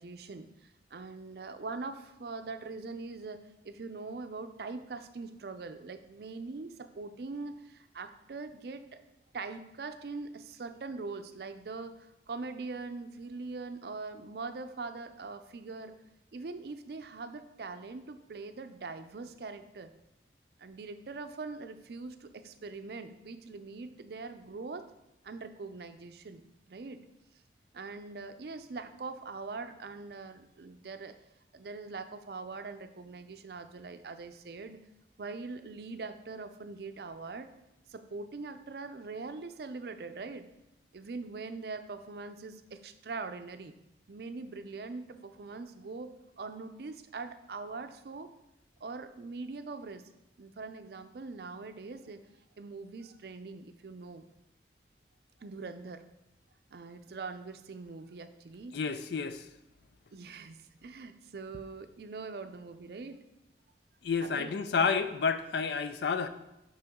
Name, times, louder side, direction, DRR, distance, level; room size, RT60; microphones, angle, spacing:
voice 1, 0.0-9.0 9.3-15.9 16.3-19.9 20.6-24.9 25.2-27.1 27.7-31.2 31.5-34.8 35.2-37.5 37.9-40.5 40.9-43.7 44.1-48.3 48.8-50.1 50.4-52.2 52.6-54.2 55.4-56.0 56.7-58.8 60.1-63.2 64.2-64.5, right 3 dB, 60° right, 9 dB, 0.4 m, -42 dB
voice 2, 58.7-59.5 64.0-66.3, left 5 dB, 70° left, 10 dB, 0.4 m, -30 dB
6.7 x 5.6 x 3.6 m, 0.89 s
head